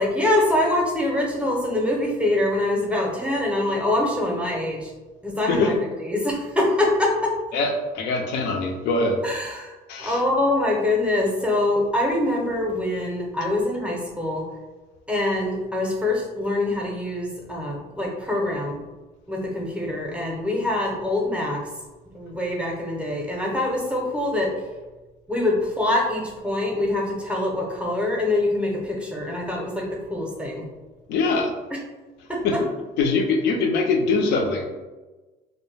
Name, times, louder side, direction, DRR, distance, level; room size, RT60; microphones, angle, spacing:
voice 1, 0.0-4.9 5.2-7.3 9.2-14.4 15.1-18.8 19.3-21.6 22.1-24.5 25.3-29.8 30.1-30.6 32.3-32.6, left 1 dB, 5° right, -1 dB, 0.5 m, -24 dB
voice 2, 7.5-9.2 9.9-10.2 31.1-31.5 32.4-32.6 33.0-34.6, left 3 dB, 85° left, 3 dB, 0.4 m, -23 dB
2.2 x 2.0 x 3.2 m, 1.2 s
cardioid pair, 110°, 17 cm